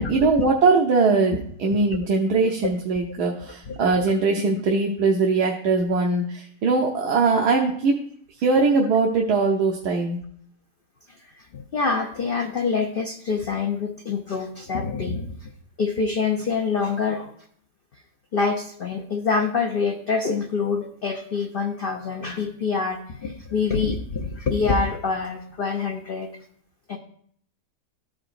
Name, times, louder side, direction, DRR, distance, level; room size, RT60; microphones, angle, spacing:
voice 1, 0.0-8.0 8.4-10.2, right 4 dB, 85° right, 0 dB, 1.3 m, -21 dB
voice 2, 3.7-4.0 11.1-15.5 15.8-17.3 18.3-26.3 26.9-27.0, left 4 dB, 70° left, 4 dB, 0.5 m, -26 dB
13.0 x 4.9 x 2.5 m, 0.63 s
omnidirectional pair, 1.7 m